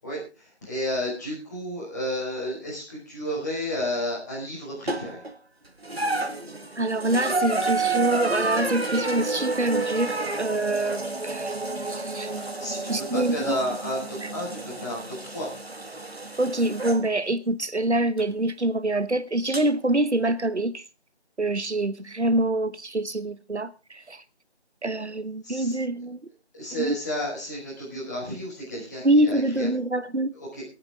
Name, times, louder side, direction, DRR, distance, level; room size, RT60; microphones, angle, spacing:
voice 1, 0.0-5.2 12.3-15.5 25.4-25.7 26.5-29.7 30.3-30.6, equal, 15° left, 5.1 m, -32 dB
sound 1, 4.9-5.3 5.8-17.0 18.2-18.3 19.5-19.6, right 3 dB, 65° right, 1.8 m, -30 dB
voice 2, 6.8-11.5 11.8-12.3 12.9-13.6 14.2-14.3 16.4-20.8 21.4-24.2 24.8-26.2 26.8-27.0 29.0-30.3, right 1 dB, 80° right, 1.2 m, -25 dB
25.0 x 8.9 x 3.6 m
figure-of-eight pair, 165°, 33 cm